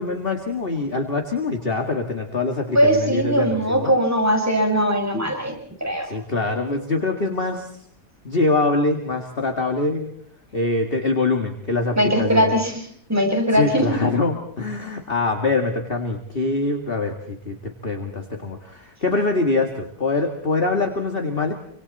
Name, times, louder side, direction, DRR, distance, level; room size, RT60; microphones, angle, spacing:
voice 1, 0.0-3.9 6.1-7.7 8.2-10.1 10.5-12.5 13.5-21.5, left 3 dB, 35° left, 3 dB, 2.3 m, -24 dB
voice 2, 2.7-5.5 5.8-6.1 12.0-12.8 13.1-13.9, equal, 10° right, 3 dB, 6.0 m, -20 dB
28.0 x 26.0 x 4.2 m, 0.66 s
omnidirectional pair, 1.8 m